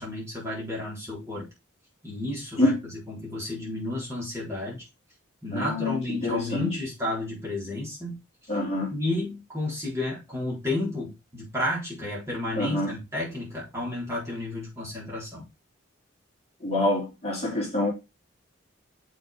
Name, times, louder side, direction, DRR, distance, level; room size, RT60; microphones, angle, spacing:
voice 1, 0.0-1.5 2.0-2.7 3.1-4.8 5.4-8.2 8.9-15.5, left 1 dB, 15° right, 4.4 m, -32 dB
voice 2, 5.5-6.8 8.5-9.0 12.6-13.0 16.6-17.9, left 1 dB, 30° left, 3.7 m, -26 dB
7.2 x 6.8 x 3.7 m
head